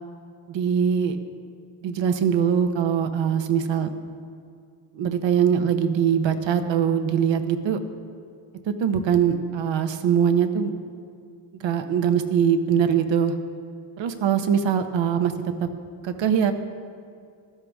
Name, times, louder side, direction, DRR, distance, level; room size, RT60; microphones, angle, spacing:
voice 1, 0.5-1.2 1.8-3.9 4.9-7.8 8.7-10.7 11.6-13.3 14.0-15.7 16.0-16.5, right 8 dB, 70° right, 8 dB, 1.1 m, -22 dB
15.5 x 12.5 x 3.6 m, 2.3 s
cardioid pair, 110°, 47 cm